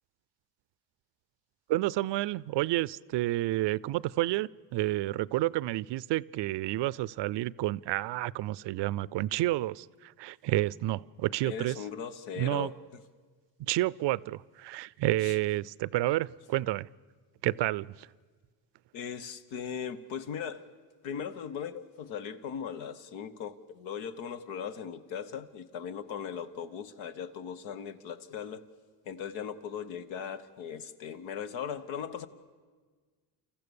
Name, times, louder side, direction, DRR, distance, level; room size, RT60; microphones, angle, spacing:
voice 1, 1.7-11.8 12.4-12.7 13.6-16.9 17.4-18.1, right 16 dB, 65° right, 0.5 m, -30 dB
voice 2, 11.4-12.7 15.2-15.4 18.9-20.6 21.0-28.6 29.0-32.3, left 7 dB, 85° left, 1.2 m, -38 dB
29.0 x 14.5 x 7.0 m
cardioid pair, 85°, 45 cm